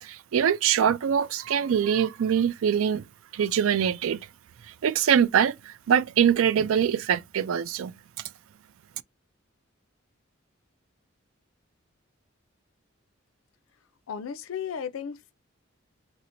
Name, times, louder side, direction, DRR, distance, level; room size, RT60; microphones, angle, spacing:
voice 1, 0.0-3.0 3.3-4.2 4.8-7.9, right 8 dB, 85° right, 0.3 m, -23 dB
voice 2, 14.1-15.3, left 7 dB, 85° left, 0.4 m, -34 dB
4.2 x 2.0 x 2.5 m
head